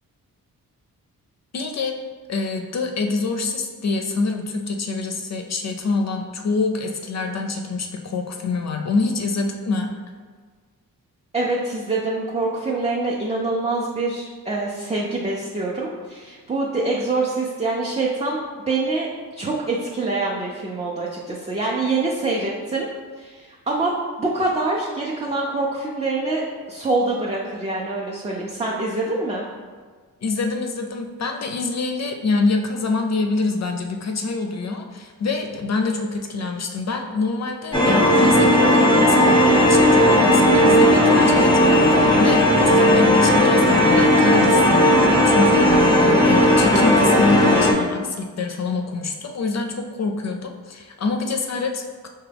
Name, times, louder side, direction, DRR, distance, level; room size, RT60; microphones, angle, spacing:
voice 1, 1.5-1.9 2.3-9.9 30.2-52.1, left 3 dB, 50° left, 3 dB, 0.4 m, -26 dB
voice 2, 11.3-18.4 18.7-19.1 19.4-22.9 23.2-23.9 24.2-29.4, right 3 dB, 20° right, -3 dB, 0.4 m, -25 dB
sound 1, 37.7-47.7, equal, 10° left, 0.8 m, -15 dB
4.6 x 2.2 x 3.4 m, 1.5 s
cardioid pair, 75°, 35 cm